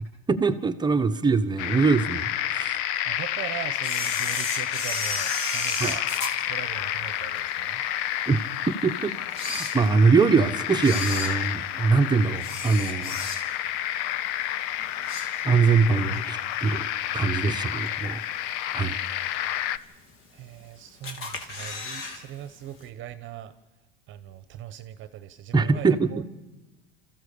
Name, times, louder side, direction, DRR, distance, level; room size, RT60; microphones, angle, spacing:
voice 1, 0.3-2.8 5.8-5.9 8.3-8.4 8.8-9.1 9.4-13.2 15.4-16.9 17.1-18.2 18.7-19.0 25.5-26.1, right 4 dB, 15° right, 7 dB, 1.1 m, -22 dB
sound 1, 1.6-19.8, left 12 dB, 60° left, 0.8 m, -30 dB
voice 2, 3.0-6.0 6.5-7.8 20.3-23.5 24.1-26.2, right 12 dB, 40° right, 12 dB, 1.1 m, -40 dB
Camera, 3.8-7.4 7.9-8.0 8.7-8.8 9.2-10.3 10.7-13.7 14.1-14.4 14.7-15.8 16.1-16.2 17.2-17.3 17.9-18.3 18.7-18.8 19.0-19.1 19.2-19.3 20.1-20.6 21.0-22.2 22.4-22.5 22.8-22.9, left 3 dB, 45° left, 3.0 m, -34 dB
26.0 x 14.5 x 6.8 m, 1.1 s
supercardioid pair, 115°, 29 cm